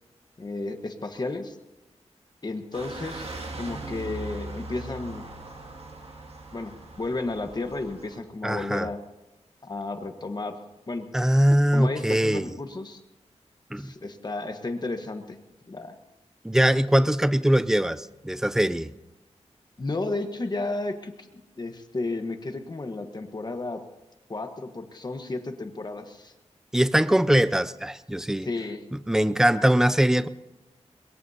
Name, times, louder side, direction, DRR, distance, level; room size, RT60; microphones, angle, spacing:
voice 1, 0.4-1.6 2.4-5.3 6.5-6.7 7.0-9.0 9.7-10.5 10.9-11.1 11.7-13.0 13.8-15.4 15.7-15.9 19.8-21.1 21.6-23.8 24.3-26.3 28.4-28.8, left 2 dB, 35° left, 6 dB, 1.3 m, -32 dB
sound 1, 2.7-8.2, right 2 dB, 60° right, 2.3 m, -40 dB
voice 2, 8.4-8.9 11.1-12.5 13.7-13.9 16.4-18.9 26.7-28.5 28.9-30.3, right 1 dB, 5° right, 15 dB, 0.4 m, -22 dB
22.5 x 22.0 x 2.8 m, 1.0 s
wide cardioid pair, 130°, 12 cm